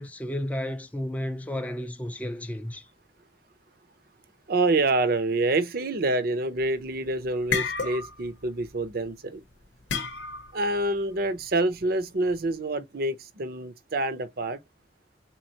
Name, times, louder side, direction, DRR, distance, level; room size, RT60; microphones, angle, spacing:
voice 1, 0.0-2.9, left 1 dB, 10° left, 0.5 m, -32 dB
voice 2, 4.5-9.4 10.5-14.6, right 2 dB, 55° right, 0.7 m, -27 dB
sound 1, 6.6-6.9 7.3-8.3 8.6-8.9 9.9-10.6, left 5 dB, 75° left, 0.8 m, -30 dB
3.9 x 3.0 x 2.8 m
head